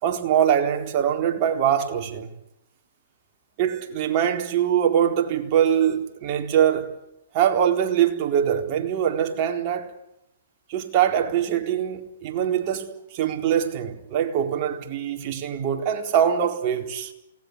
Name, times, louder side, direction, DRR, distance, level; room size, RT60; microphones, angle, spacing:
voice 1, 0.0-2.3 3.6-6.9 7.3-9.9 10.7-17.1, right 9 dB, 40° right, 4.1 m, -23 dB
28.5 x 20.0 x 8.2 m
hypercardioid pair, 140°, 0 cm